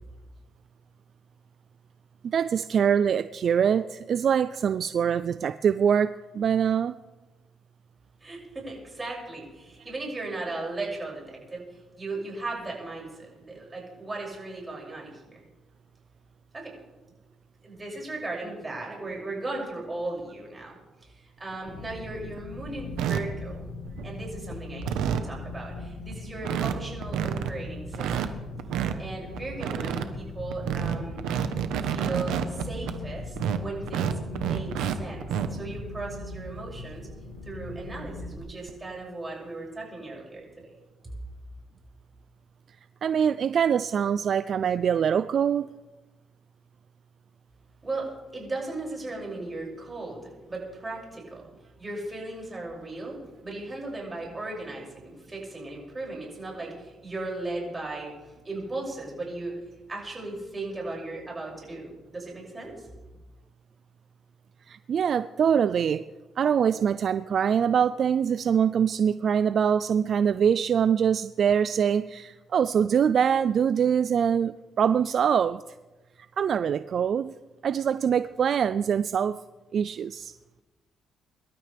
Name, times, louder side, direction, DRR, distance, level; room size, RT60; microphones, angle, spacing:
voice 1, 2.2-6.9 43.0-45.7 64.7-66.0 66.4-75.6 76.4-77.3 77.6-79.4 79.7-80.3, right 7 dB, 55° right, 14 dB, 0.4 m, -24 dB
voice 2, 8.2-11.6 12.0-15.4 16.5-16.7 17.6-23.7 24.0-28.3 29.0-31.2 31.8-37.1 37.4-40.7 47.8-51.5 51.8-53.2 53.4-59.6 59.9-62.9, right 2 dB, 25° right, -2 dB, 6.5 m, -37 dB
sound 1, 21.5-21.6 22.0-22.4 23.0-23.2 23.9-24.2 24.5-24.6 24.8-25.3 25.8-25.9 26.1-26.2 26.4-26.7 27.0-27.5 27.9-28.9 29.3-30.0 30.5-33.0 33.4-34.9 35.2-35.5 36.8-36.9 37.4-37.5 38.7-38.9, right 9 dB, 90° right, 1.0 m, -28 dB
sound 2, 21.6-38.4, left 2 dB, 75° left, 2.2 m, -40 dB
24.5 x 12.5 x 3.4 m, 1.1 s
cardioid pair, 90°, 0 cm